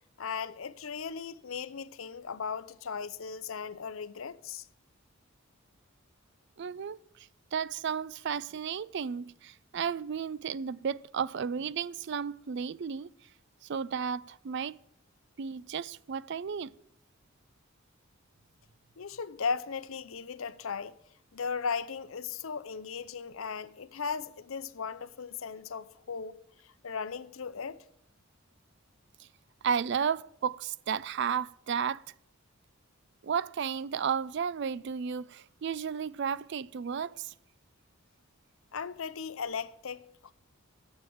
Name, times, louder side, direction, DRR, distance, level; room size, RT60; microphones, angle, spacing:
voice 1, 0.2-4.7 19.0-20.9 21.3-26.4 26.6-27.8 38.7-40.1, left 5 dB, 75° left, 0.6 m, -37 dB
voice 2, 6.6-7.0 7.5-13.1 13.7-14.8 15.4-16.7 29.6-32.0 33.2-37.3, right 7 dB, 55° right, 0.4 m, -33 dB
14.0 x 7.4 x 7.8 m
head